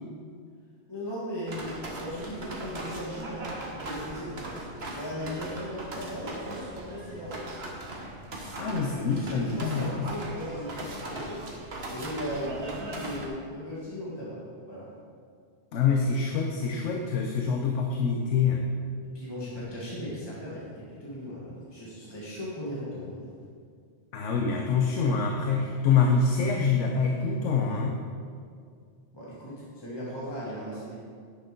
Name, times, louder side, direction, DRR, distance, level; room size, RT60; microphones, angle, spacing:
voice 1, 0.9-1.7 2.0-4.4 4.9-7.5 8.7-11.5 11.9-14.4 14.7-14.9 19.0-23.3 29.1-31.0, equal, 20° left, -7 dB, 1.9 m, -37 dB
sound 1, 1.5-13.3, right 1 dB, 60° right, 1.6 m, -39 dB
voice 2, 8.6-10.1 15.7-18.6 24.1-28.0, left 5 dB, 85° left, 2 dB, 1.1 m, -25 dB
10.0 x 6.5 x 5.2 m, 2.1 s
omnidirectional pair, 1.2 m